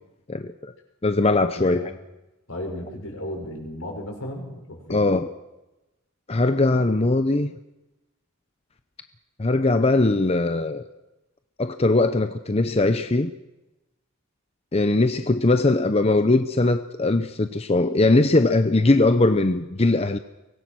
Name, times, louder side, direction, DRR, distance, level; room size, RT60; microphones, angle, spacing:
voice 1, 0.3-0.7 1.0-1.9 4.9-5.3 6.3-7.5 9.4-10.8 11.6-13.3 14.7-20.2, left 2 dB, 30° left, 0.7 m, -20 dB
voice 2, 1.5-1.9 2.5-5.1, left 1 dB, 75° left, 6.8 m, -34 dB
24.0 x 20.5 x 6.3 m
head